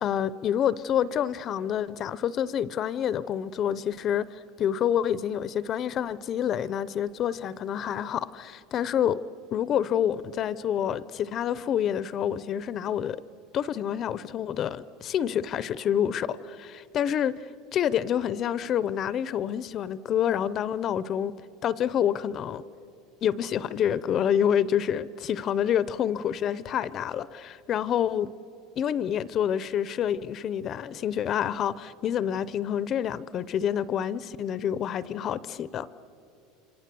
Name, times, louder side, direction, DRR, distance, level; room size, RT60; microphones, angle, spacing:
voice 1, 0.0-9.2 9.5-13.2 13.5-21.3 21.6-22.6 23.2-28.3 28.8-35.9, left 9 dB, 35° left, 17 dB, 0.5 m, -28 dB
28.0 x 25.5 x 7.6 m, 2.7 s
cardioid pair, 160°, 0 cm